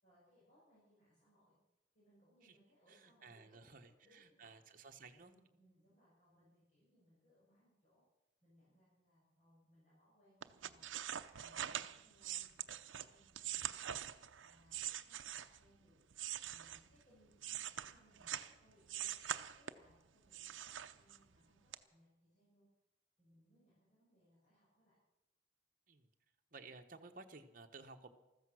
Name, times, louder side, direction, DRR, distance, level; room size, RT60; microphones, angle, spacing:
voice 1, 0.0-1.6 1.9-4.5 5.3-8.0 8.4-10.9 11.3-13.9 14.4-16.0 16.4-22.7 23.2-25.0, equal, 40° left, -9 dB, 7.1 m, -71 dB
voice 2, 2.9-5.3 25.9-26.1 26.5-28.1, right 3 dB, 45° right, 5 dB, 1.2 m, -56 dB
sound 1, 10.4-15.7 16.1-18.5 18.9-19.9 20.3-21.4 21.7-21.8, right 10 dB, 85° right, 0.7 m, -44 dB
15.0 x 14.0 x 6.3 m, 0.96 s
head